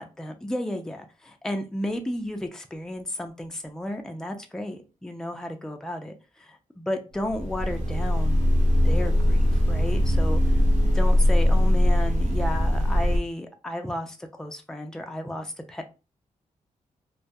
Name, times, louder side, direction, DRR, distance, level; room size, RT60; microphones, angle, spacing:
voice 1, 0.0-8.4 8.8-10.5 10.8-15.8, left 1 dB, 5° left, 0.4 m, -33 dB
sound 1, 7.2-13.2, left 1 dB, 60° right, 0.7 m, -21 dB
2.2 x 2.2 x 2.6 m
cardioid pair, 80°, 14 cm